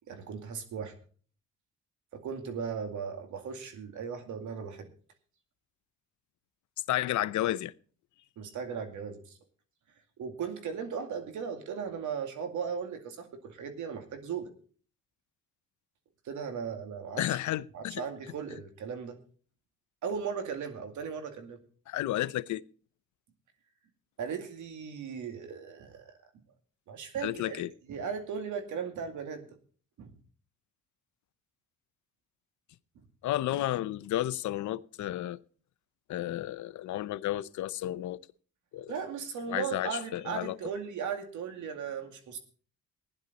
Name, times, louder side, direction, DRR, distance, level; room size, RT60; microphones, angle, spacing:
voice 1, 0.1-0.9 2.1-4.9 8.4-9.3 10.2-14.5 16.2-17.4 17.7-19.2 20.0-21.6 24.2-26.1 26.9-27.6 27.9-29.5 30.0-30.1 38.9-42.4, right 6 dB, 75° right, 2.3 m, -37 dB
voice 2, 6.9-7.7 17.2-18.0 21.9-22.6 27.2-27.7 33.2-35.4 36.1-38.2 38.7-38.9 39.5-40.6, left 14 dB, 75° left, 0.7 m, -32 dB
15.5 x 10.5 x 4.1 m
cardioid pair, 90°, 30 cm